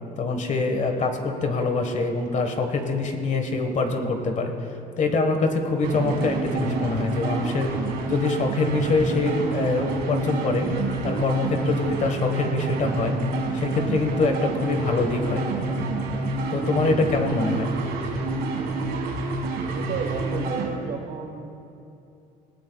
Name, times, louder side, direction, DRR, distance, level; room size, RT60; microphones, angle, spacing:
voice 1, 0.2-4.5 5.0-7.7 8.1-10.7 11.0-13.1 13.5-15.4 16.5-17.7, left 3 dB, 45° left, 5 dB, 1.4 m, -24 dB
sound 1, 5.8-20.7, right 2 dB, 85° right, 1.9 m, -28 dB
voice 2, 19.7-21.6, right 5 dB, 60° right, 4 dB, 1.4 m, -32 dB
19.5 x 15.0 x 2.4 m, 2.6 s
cardioid pair, 110°, 17 cm